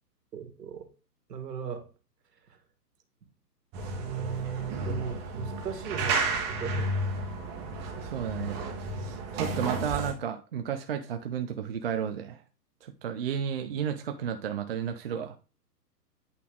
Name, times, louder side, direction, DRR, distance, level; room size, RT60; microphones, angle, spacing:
voice 1, 0.3-0.9 1.3-1.9 2.5-2.6 4.0-7.2, right 7 dB, 70° right, 5 dB, 2.2 m, -37 dB
sound 1, 3.7-10.1, right 2 dB, 20° right, 1.3 m, -32 dB
voice 2, 8.0-8.6 9.0-12.4 12.8-15.3, right 8 dB, 40° right, 6 dB, 0.5 m, -33 dB
8.5 x 4.2 x 3.6 m, 0.34 s
hypercardioid pair, 145°, 50 cm